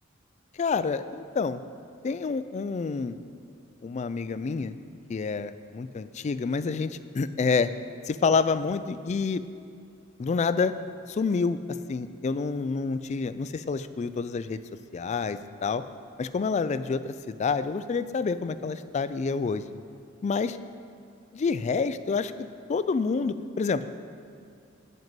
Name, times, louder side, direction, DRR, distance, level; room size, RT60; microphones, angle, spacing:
voice 1, 0.6-1.6 2.0-3.2 3.8-4.8 5.1-7.7 8.1-9.4 10.2-10.8 11.1-11.6 11.9-14.6 14.9-15.8 16.2-19.6 20.2-20.6 21.3-23.9, left 4 dB, 35° left, 13 dB, 0.3 m, -28 dB
7.9 x 5.3 x 7.6 m, 2.5 s
head